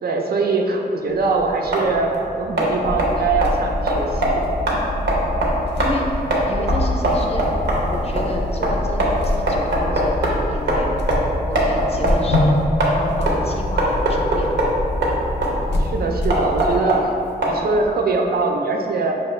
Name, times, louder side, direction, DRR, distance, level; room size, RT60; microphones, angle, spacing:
voice 1, 0.0-4.4 4.7-4.9 12.0-12.3 15.5-17.2 17.4-19.1, right 3 dB, 65° right, 2 dB, 0.5 m, -22 dB
sound 1, 1.1-17.9, right 1 dB, 90° right, 0.8 m, -23 dB
sound 2, 2.8-16.8, left 1 dB, 90° left, 0.4 m, -25 dB
voice 2, 5.8-7.5 7.9-10.9 11.4-12.6 12.9-14.7, left 1 dB, 35° left, 0 dB, 0.5 m, -31 dB
5.6 x 2.4 x 3.1 m, 2.6 s
wide cardioid pair, 105°, 17 cm